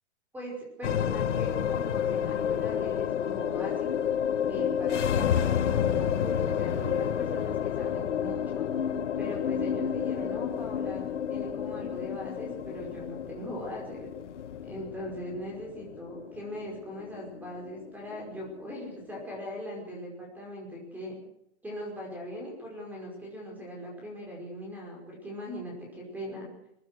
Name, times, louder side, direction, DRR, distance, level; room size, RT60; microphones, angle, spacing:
voice 1, 0.3-3.9 4.5-8.6 9.2-14.1 14.7-21.2 21.6-26.5, equal, 5° right, -1 dB, 5.3 m, -40 dB
sound 1, 0.8-19.3, left 8 dB, 90° left, 1.5 m, -30 dB
22.0 x 15.5 x 7.9 m, 0.77 s
hypercardioid pair, 165°, 35 cm